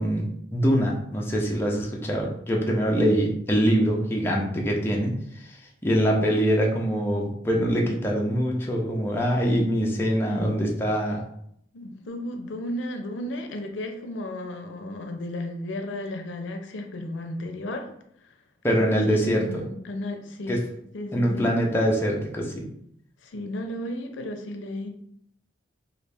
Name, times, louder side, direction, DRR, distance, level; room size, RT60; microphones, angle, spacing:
voice 1, 0.0-5.6 5.8-11.2 18.6-19.6 20.5-20.6 21.1-22.7, equal, 10° left, -2 dB, 0.5 m, -24 dB
voice 2, 11.7-17.9 18.2-18.3 18.7-20.6 20.9-21.5 23.2-24.9, left 1 dB, 75° left, 4 dB, 0.5 m, -34 dB
3.1 x 2.4 x 3.3 m, 0.70 s
head